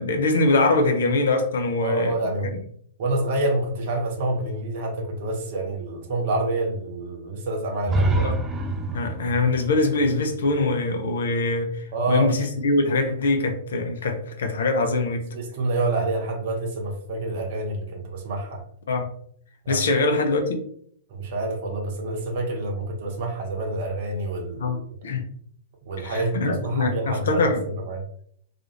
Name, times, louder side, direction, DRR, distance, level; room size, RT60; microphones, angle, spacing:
voice 1, 0.0-2.6 8.2-8.3 8.9-15.3 18.9-19.1 19.7-20.6 24.6-24.8 25.0-25.2 26.0-27.6, left 2 dB, 60° left, 4 dB, 0.5 m, -23 dB
voice 2, 1.8-2.5 3.0-8.3 11.9-12.3 15.3-18.6 19.6-19.9 21.1-24.8 25.9-27.4 27.7-28.0, right 2 dB, 50° right, 1 dB, 0.7 m, -27 dB
sound 1, 7.8-11.7, right 1 dB, 15° right, 0.4 m, -28 dB
2.4 x 2.3 x 2.9 m, 0.63 s
figure-of-eight pair, 100°, 0 cm